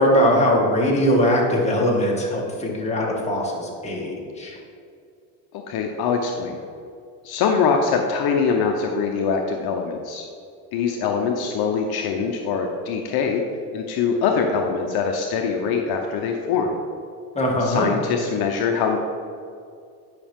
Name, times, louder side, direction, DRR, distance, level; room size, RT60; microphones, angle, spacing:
voice 1, 0.0-4.6 17.3-17.9, equal, 15° left, -3 dB, 1.9 m, -21 dB
voice 2, 5.5-6.6 7.2-10.3 10.7-13.4 13.7-16.8 17.6-19.0, left 5 dB, 60° left, 3 dB, 0.8 m, -23 dB
9.8 x 5.8 x 3.6 m, 2.4 s
supercardioid pair, 110°, 43 cm